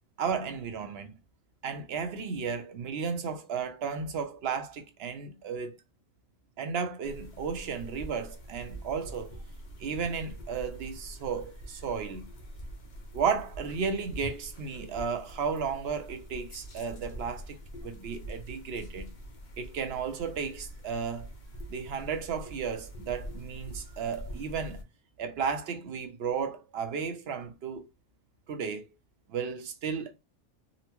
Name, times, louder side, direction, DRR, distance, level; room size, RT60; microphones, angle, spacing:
voice 1, 0.2-1.1 1.6-5.8 6.6-9.3 9.8-12.3 13.1-19.1 19.6-21.3 21.7-24.8 25.2-27.9 28.5-28.9 29.3-30.1, right 6 dB, 65° right, 0.7 m, -34 dB
sound 1, 7.0-24.8, right 1 dB, 45° left, 0.7 m, -44 dB
3.9 x 2.0 x 2.9 m
omnidirectional pair, 1.3 m